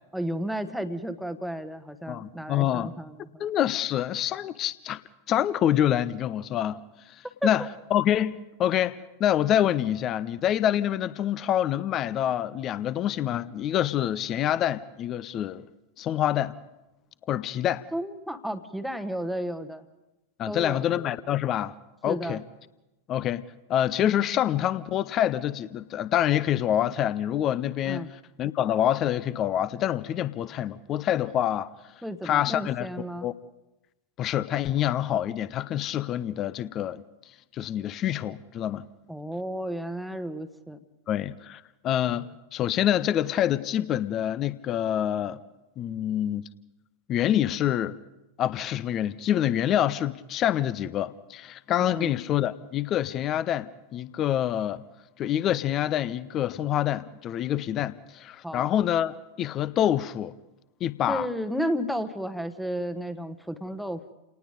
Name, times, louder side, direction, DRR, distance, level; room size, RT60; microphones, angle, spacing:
voice 1, 0.1-3.4 7.4-7.5 17.9-19.8 20.5-20.8 22.0-22.4 27.9-28.1 32.0-33.3 39.1-40.8 52.0-52.1 58.4-58.7 61.1-64.1, equal, ahead, 1.2 m, -32 dB
voice 2, 2.1-2.9 3.4-5.0 5.3-7.7 7.9-15.6 16.0-16.6 17.3-17.8 20.4-21.8 22.0-22.4 23.1-23.4 23.7-31.7 32.2-33.3 34.2-37.0 37.5-38.8 41.1-45.4 45.8-46.4 47.1-48.0 48.4-54.8 55.2-60.3 60.8-61.3, left 11 dB, 30° left, 0.6 m, -26 dB
29.0 x 19.0 x 5.2 m
figure-of-eight pair, 90°, 0 cm